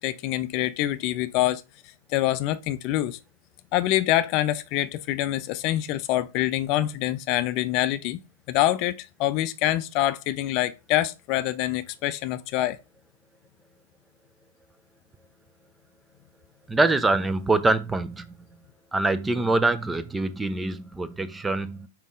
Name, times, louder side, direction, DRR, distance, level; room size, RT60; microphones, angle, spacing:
voice 1, 0.0-1.6 2.1-3.2 3.7-8.2 8.5-12.8, left 14 dB, 45° left, 0.5 m, -25 dB
voice 2, 16.7-18.4 18.9-21.9, right 2 dB, 10° right, 0.7 m, -24 dB
5.4 x 4.7 x 3.8 m
hypercardioid pair, 105°, 0 cm